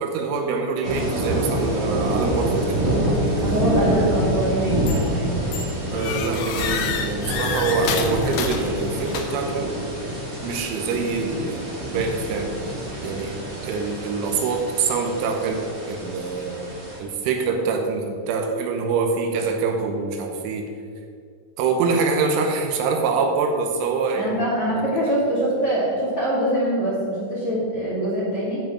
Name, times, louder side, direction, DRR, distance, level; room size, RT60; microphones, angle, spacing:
voice 1, 0.0-3.6 5.9-9.7 10.4-12.5 13.0-13.4 13.6-20.7 21.6-24.4 24.7-25.2, right 4 dB, 80° right, 3 dB, 3.2 m, -25 dB
sound 1, 0.8-17.0, right 1 dB, 40° right, 1.5 m, -27 dB
voice 2, 3.3-5.4 24.1-28.6, right 1 dB, 35° left, -7 dB, 3.1 m, -24 dB
sound 2, 4.9-5.2 5.5-9.6, left 6 dB, 80° left, 3.0 m, -29 dB
10.5 x 4.8 x 7.3 m, 2.3 s
omnidirectional pair, 5.7 m